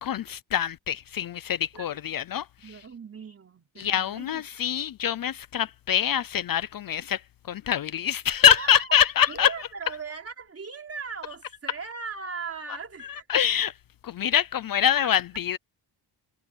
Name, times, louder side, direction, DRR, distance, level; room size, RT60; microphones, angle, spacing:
voice 1, 0.0-2.5 3.8-7.2 7.5-9.5 13.0-13.7 14.0-15.6, left 9 dB, 50° left, 0.6 m, -24 dB
voice 2, 2.6-4.7 8.5-8.8 9.3-13.3 15.0-15.1, right 5 dB, 30° right, 3.7 m, -39 dB
wide cardioid pair, 150°, 46 cm